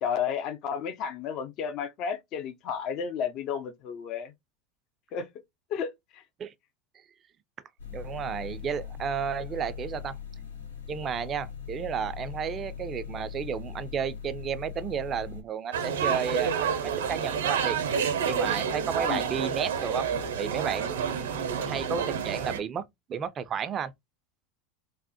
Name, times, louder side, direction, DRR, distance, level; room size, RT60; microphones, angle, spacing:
voice 1, 0.0-4.3 5.1-5.3 5.7-6.2 19.1-19.2, left 7 dB, 45° left, 0.5 m, -32 dB
sound 1, 7.8-15.4, left 7 dB, 85° left, 0.8 m, -40 dB
voice 2, 7.9-10.2 10.9-17.8 18.3-20.1 20.4-22.8 23.1-23.9, right 7 dB, 35° right, 0.4 m, -32 dB
sound 2, 15.7-22.6, right 7 dB, 70° right, 0.7 m, -29 dB
3.4 x 2.0 x 2.7 m
figure-of-eight pair, 85°, 0 cm